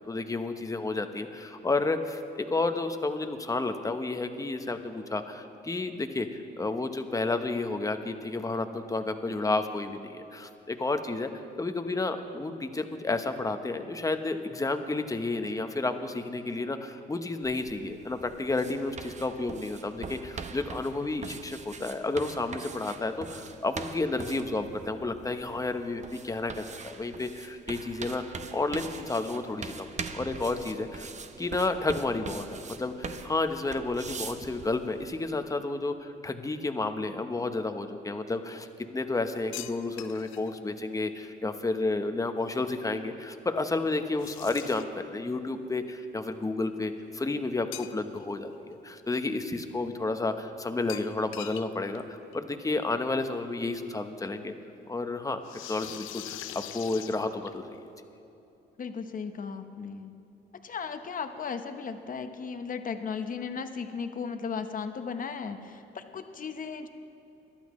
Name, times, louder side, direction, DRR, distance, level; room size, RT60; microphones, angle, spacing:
voice 1, 0.1-11.3 11.6-29.9 30.1-31.1 31.4-38.7 38.9-54.5 54.9-55.4 55.7-57.8, left 3 dB, 15° left, 7 dB, 0.9 m, -31 dB
sound 1, 17.4-35.1, right 5 dB, 35° right, 0.8 m, -42 dB
sound 2, 39.5-40.5 44.2-45.0 47.7-48.3 48.7-48.8 50.9-51.7 51.9-52.0 52.3-52.4 53.6-53.7 55.4-57.8, left 12 dB, 85° left, 0.5 m, -42 dB
voice 2, 58.8-60.1 60.6-66.9, left 6 dB, 45° left, 8 dB, 1.0 m, -36 dB
23.0 x 11.5 x 3.2 m, 2.9 s
cardioid pair, 90°, 20 cm